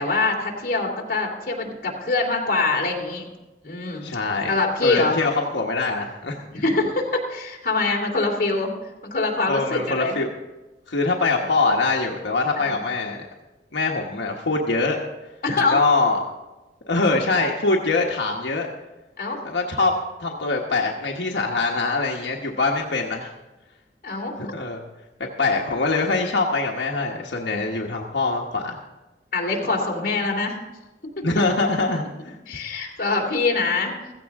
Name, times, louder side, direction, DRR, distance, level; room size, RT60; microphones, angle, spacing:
voice 1, 0.0-3.3 3.6-4.0 4.5-5.1 6.5-8.7 9.0-10.2 12.6-12.8 15.4-15.8 19.2-19.4 24.0-24.5 29.3-30.6 32.5-34.1, left 3 dB, 50° left, 0 dB, 2.7 m, -24 dB
voice 2, 4.0-4.5 4.8-6.4 9.5-10.3 10.9-13.3 13.7-15.0 15.7-16.2 16.9-18.7 19.4-19.9 20.2-23.3 24.4-24.8 25.4-28.8 31.2-32.3, left 3 dB, 85° left, 0 dB, 1.3 m, -23 dB
15.5 x 15.0 x 3.6 m, 1.1 s
head